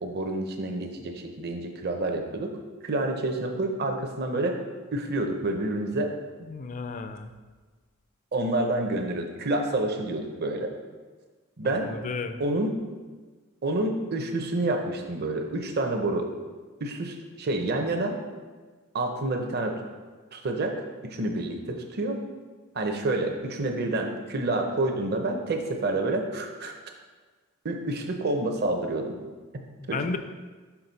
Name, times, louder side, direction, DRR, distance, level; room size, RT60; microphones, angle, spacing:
voice 1, 0.0-2.5 2.8-4.6 4.9-6.1 8.3-10.7 11.6-11.9 12.4-12.7 13.6-16.3 16.8-18.2 18.9-19.8 20.3-20.8 21.0-22.2 22.7-26.7 27.6-29.2 29.9-30.2, right 2 dB, 45° right, 4 dB, 0.7 m, -28 dB
voice 2, 6.4-7.3 11.6-12.4 29.8-30.2, left 4 dB, 35° left, 8 dB, 0.4 m, -33 dB
5.9 x 5.2 x 4.0 m, 1.4 s
head